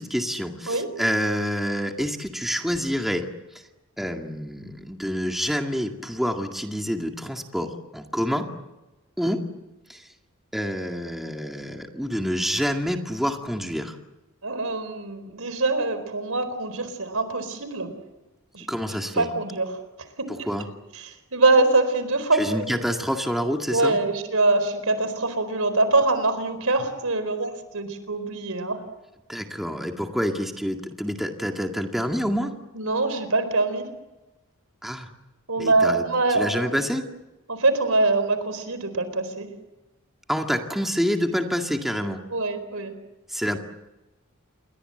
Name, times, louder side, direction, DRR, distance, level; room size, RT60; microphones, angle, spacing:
voice 1, 0.0-3.3 4.0-8.5 9.2-9.4 9.9-10.0 10.5-14.0 18.7-19.3 20.3-20.6 22.3-24.0 29.3-32.5 34.8-35.1 35.6-36.0 36.3-37.0 40.3-42.2 43.3-43.6, equal, ahead, 3 dB, 2.1 m, -27 dB
voice 2, 14.4-17.9 18.5-18.7 19.1-19.8 20.2-20.5 20.9-22.8 23.7-28.8 32.7-33.8 35.5-36.8 37.5-39.5 42.3-42.9, right 2 dB, 75° right, 11 dB, 4.4 m, -24 dB
29.0 x 22.5 x 7.9 m, 1.1 s
head